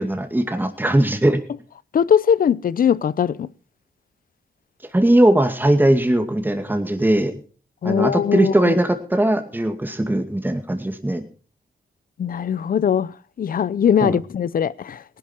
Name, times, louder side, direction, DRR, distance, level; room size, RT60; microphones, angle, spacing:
voice 1, 0.0-1.4 4.9-7.3 7.8-11.2 14.0-14.2, right 1 dB, 10° right, 2.2 m, -19 dB
voice 2, 1.9-3.5 7.8-8.7 12.2-13.1 13.4-15.0, left 8 dB, 60° left, 0.7 m, -20 dB
18.5 x 11.5 x 4.5 m
cardioid pair, 65°, 16 cm